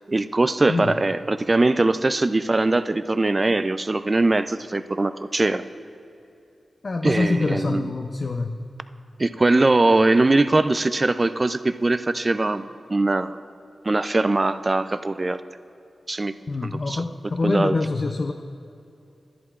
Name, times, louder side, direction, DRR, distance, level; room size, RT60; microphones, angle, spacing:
voice 1, 0.1-5.6 7.0-7.9 9.2-13.3 13.8-15.4 16.1-16.3 16.6-17.0 17.4-17.8, right 2 dB, 30° right, 12 dB, 0.3 m, -21 dB
voice 2, 6.8-8.6 16.5-18.3, left 3 dB, 45° left, 5 dB, 0.4 m, -25 dB
13.5 x 11.0 x 2.4 m, 2.7 s
wide cardioid pair, 115°, 0 cm